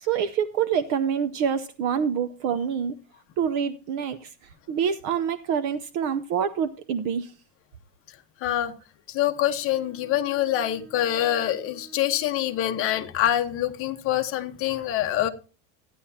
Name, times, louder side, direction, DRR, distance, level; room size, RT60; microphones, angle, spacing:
voice 1, 0.0-2.9 3.4-4.3 4.7-7.3, right 7 dB, 40° right, 0.7 m, -26 dB
voice 2, 8.4-8.7 9.1-15.3, left 12 dB, 30° left, 1.0 m, -25 dB
Bowed string instrument, 9.2-13.1, right 3 dB, 25° right, 7.1 m, -51 dB
14.5 x 10.0 x 2.8 m
supercardioid pair, 165°, 43 cm